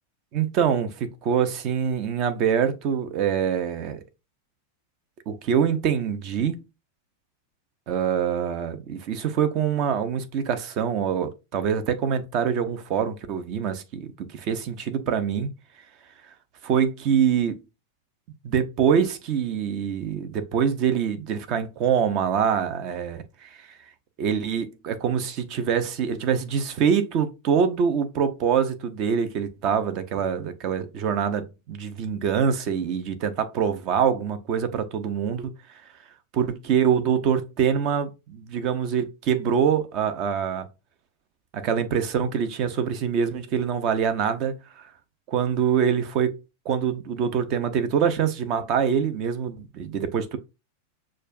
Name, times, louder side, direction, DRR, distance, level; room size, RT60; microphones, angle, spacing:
voice 1, 0.3-4.0 5.3-6.6 7.9-15.5 16.6-17.6 18.4-23.8 24.2-35.5 36.3-40.7 41.5-44.9 45.3-46.4 46.6-50.4, right 7 dB, 40° right, 0.7 m, -25 dB
6.4 x 2.4 x 2.5 m
figure-of-eight pair, 90°, 0 cm